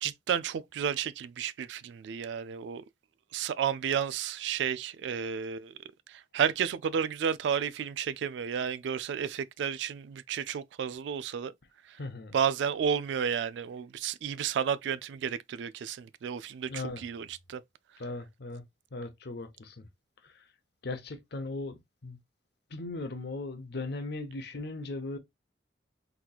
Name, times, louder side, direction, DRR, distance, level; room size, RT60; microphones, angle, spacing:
voice 1, 0.0-2.8 3.3-5.7 6.1-11.5 11.9-12.0 12.3-17.6, right 7 dB, 70° right, 0.3 m, -32 dB
voice 2, 12.0-12.3 16.7-17.0 18.0-18.6 18.9-19.9 20.2-20.3 20.8-22.2 22.7-25.2, left 2 dB, 60° left, 0.7 m, -38 dB
4.0 x 2.9 x 2.3 m
head